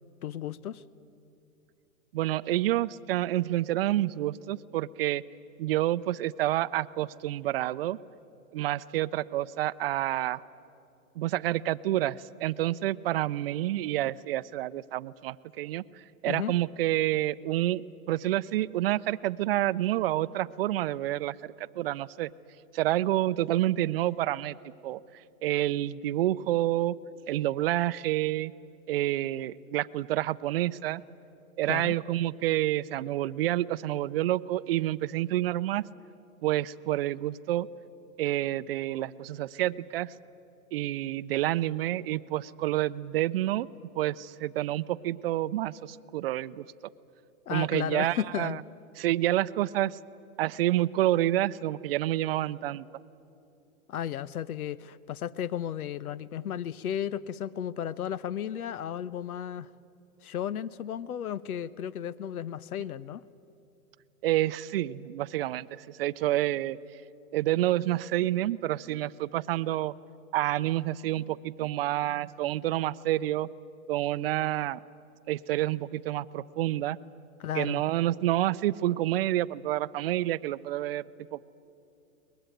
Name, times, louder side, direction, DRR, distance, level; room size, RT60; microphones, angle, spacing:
voice 1, 0.2-0.8 16.3-16.5 31.7-31.9 47.5-48.6 53.9-59.7 60.2-63.2 77.4-77.8, left 9 dB, 80° left, 20 dB, 0.9 m, -34 dB
voice 2, 2.1-5.2 5.6-8.0 8.5-10.4 11.2-15.8 16.2-22.3 22.7-24.6 24.8-25.0 25.4-27.0 27.3-28.5 28.9-31.0 31.6-35.8 36.4-37.7 38.2-40.1 40.7-43.7 43.9-46.7 47.5-48.6 49.0-50.0 50.4-52.9 64.2-66.8 67.3-69.9 70.3-73.5 73.9-74.8 75.3-77.0 77.5-81.0 81.3-81.6, right 14 dB, 45° right, 16 dB, 0.6 m, -28 dB
23.0 x 20.5 x 9.1 m, 2.8 s
hypercardioid pair, 145°, 43 cm